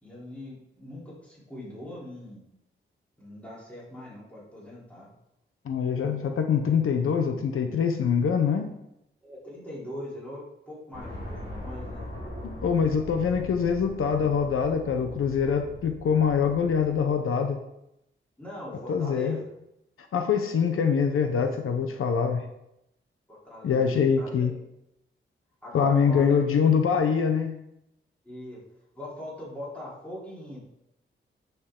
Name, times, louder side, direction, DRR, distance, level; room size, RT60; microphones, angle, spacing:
voice 1, 0.0-2.4 3.2-5.1 9.2-12.1 18.4-19.4 23.3-24.6 25.6-26.4 28.2-28.6 28.9-30.6, left 1 dB, 5° left, -7 dB, 3.5 m, -41 dB
voice 2, 5.6-8.7 12.4-17.6 18.9-19.4 20.1-22.4 23.6-24.5 25.7-27.5, left 6 dB, 90° left, 6 dB, 0.8 m, -24 dB
sound 1, 10.9-17.1, left 1 dB, 60° left, 3.3 m, -41 dB
8.7 x 6.8 x 3.8 m, 0.84 s
wide cardioid pair, 125°, 21 cm